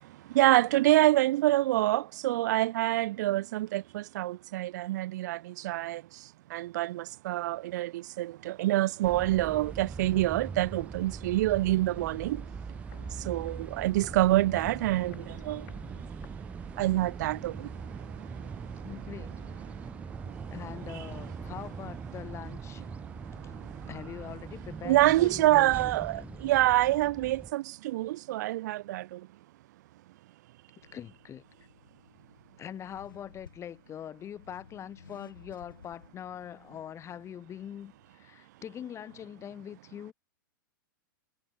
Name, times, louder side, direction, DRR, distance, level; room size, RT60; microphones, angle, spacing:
voice 1, 0.3-5.4 5.6-6.0 6.5-7.9 8.2-12.4 13.3-15.1 15.5-15.6 16.8-17.5 24.8-29.0, right 16 dB, 55° right, 0.7 m, -26 dB
sound 1, 9.0-27.5, right 5 dB, 10° right, 0.5 m, -41 dB
Walk footsteps, 12.9-17.0 17.3-17.4, left 15 dB, 55° left, 7.7 m, -54 dB
voice 2, 18.8-19.7 20.5-22.8 23.4-23.5 23.9-25.8 26.1-26.4 30.9-31.4 32.6-40.1, left 9 dB, 25° left, 3.3 m, -43 dB
Accelerating revving vroom, 30.8-38.2, left 6 dB, 80° left, 7.4 m, -56 dB
figure-of-eight pair, 105°, 11 cm